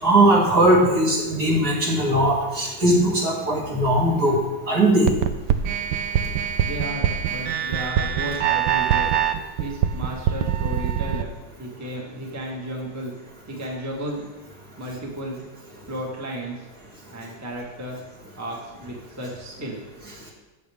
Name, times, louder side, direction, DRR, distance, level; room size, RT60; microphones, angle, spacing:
voice 1, 0.0-4.4 4.7-5.1, right 1 dB, 55° right, -5 dB, 3.2 m, -19 dB
sound 1, 5.1-11.2, right 9 dB, 75° right, 1.2 m, -23 dB
voice 2, 6.6-9.1 9.6-13.1 13.5-14.3 14.8-15.4 15.9-16.6 17.1-18.0 18.4-19.8, right 1 dB, 10° right, -2 dB, 1.4 m, -33 dB
13.5 x 8.5 x 3.6 m, 1.1 s
omnidirectional pair, 2.0 m